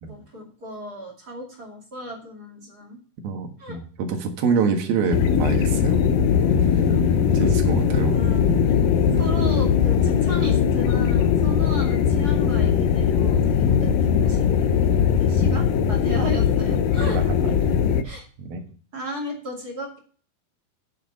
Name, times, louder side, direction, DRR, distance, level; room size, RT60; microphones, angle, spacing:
voice 1, 0.1-3.0 3.6-3.8 7.4-8.5 9.1-13.9 14.2-14.5 15.2-17.2 18.0-18.3 18.9-20.0, equal, 30° right, -1 dB, 2.4 m, -35 dB
voice 2, 3.2-6.0 6.9-7.0 7.3-8.7 9.1-9.2 17.1-17.2 18.0-18.1 18.4-18.6, right 5 dB, 75° right, 4 dB, 3.4 m, -26 dB
sound 1, 5.1-18.0, left 7 dB, 75° left, 2.4 m, -20 dB
9.0 x 7.5 x 5.5 m, 0.42 s
omnidirectional pair, 4.3 m